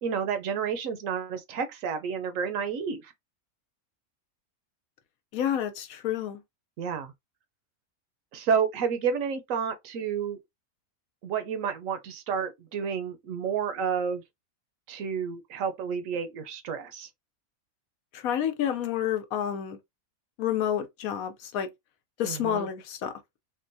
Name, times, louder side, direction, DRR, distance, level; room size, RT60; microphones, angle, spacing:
voice 1, 0.0-3.1 6.8-7.1 8.3-10.4 11.2-14.2 14.9-17.1 22.2-22.7, right 6 dB, 70° right, 1.0 m, -30 dB
voice 2, 5.3-6.4 18.1-19.8 20.4-21.7 22.2-23.1, left 10 dB, 75° left, 1.1 m, -29 dB
3.7 x 2.2 x 2.5 m
omnidirectional pair, 1.5 m